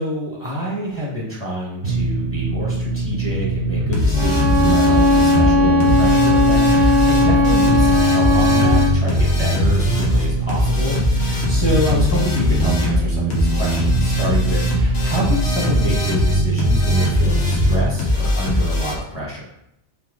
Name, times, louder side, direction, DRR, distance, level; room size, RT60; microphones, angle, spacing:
voice 1, 0.0-19.4, right 1 dB, 10° left, -7 dB, 1.5 m, -26 dB
sound 1, 1.8-17.8, right 2 dB, 65° right, 1.0 m, -22 dB
sound 2, 3.9-18.9, left 2 dB, 65° left, 1.3 m, -21 dB
Bowed string instrument, 4.1-9.0, left 2 dB, 85° right, 1.0 m, -17 dB
4.1 x 3.1 x 3.8 m, 0.78 s
omnidirectional pair, 1.2 m